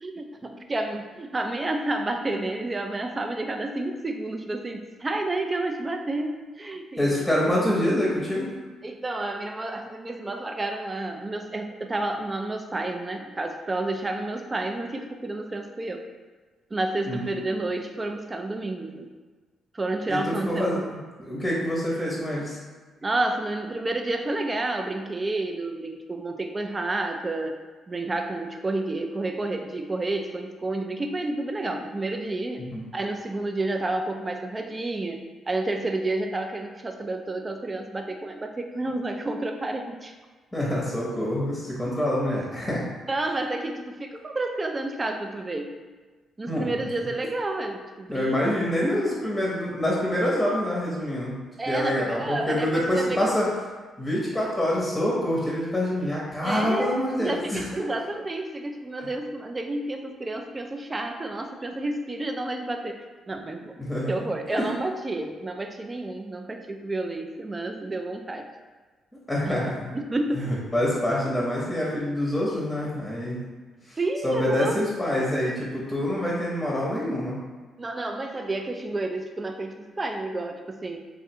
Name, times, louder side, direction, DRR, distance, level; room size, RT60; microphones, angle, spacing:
voice 1, 0.0-7.3 8.8-16.0 16.7-19.1 19.7-20.9 23.0-27.6 27.9-32.7 32.9-35.2 35.5-40.1 43.1-45.8 46.4-48.7 49.1-49.3 51.6-53.4 56.4-56.9 57.2-63.0 63.3-63.8 64.1-68.5 69.5-69.6 69.9-70.5 74.0-74.8 77.8-81.0, right 2 dB, 25° right, 5 dB, 0.4 m, -30 dB
voice 2, 7.0-8.5 17.1-17.3 20.1-22.6 32.7-32.8 40.5-42.9 46.5-46.9 48.1-51.4 51.7-53.5 54.0-57.7 63.8-64.7 69.3-69.9 70.3-73.4 73.9-74.0 74.2-77.4, left 1 dB, 10° left, -5 dB, 0.8 m, -26 dB
3.1 x 2.5 x 2.8 m, 1.3 s
supercardioid pair, 70°, 0 cm